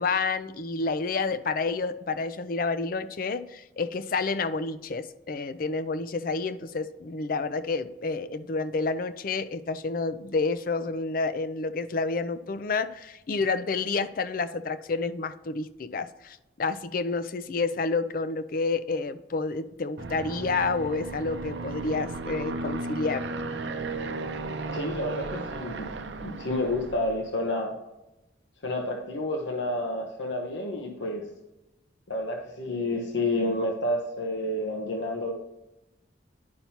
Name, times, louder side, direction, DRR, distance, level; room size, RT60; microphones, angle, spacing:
voice 1, 0.0-23.3, left 4 dB, 50° left, 12 dB, 0.4 m, -29 dB
Aircraft, 20.0-27.3, right 3 dB, 70° right, 0.6 m, -35 dB
voice 2, 24.7-25.9 26.2-27.7 28.6-31.3 32.1-35.3, left 1 dB, 80° left, 2 dB, 1.0 m, -29 dB
10.5 x 5.6 x 2.9 m, 0.96 s
head